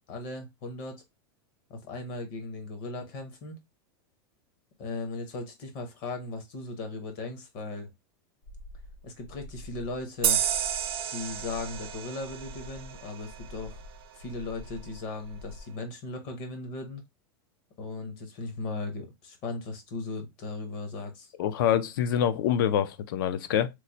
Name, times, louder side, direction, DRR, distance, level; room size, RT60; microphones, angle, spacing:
voice 1, 0.1-1.0 1.7-3.6 4.8-7.9 9.0-10.4 11.1-13.8 14.1-17.0 17.8-21.3, left 3 dB, 35° left, 0.8 m, -37 dB
sound 1, 8.4-15.6, left 1 dB, 85° left, 1.0 m, -47 dB
sound 2, 10.2-13.6, right 9 dB, 70° right, 0.7 m, -31 dB
voice 2, 21.4-23.7, left 9 dB, 60° left, 0.4 m, -26 dB
3.1 x 2.1 x 3.8 m
supercardioid pair, 175°, 13 cm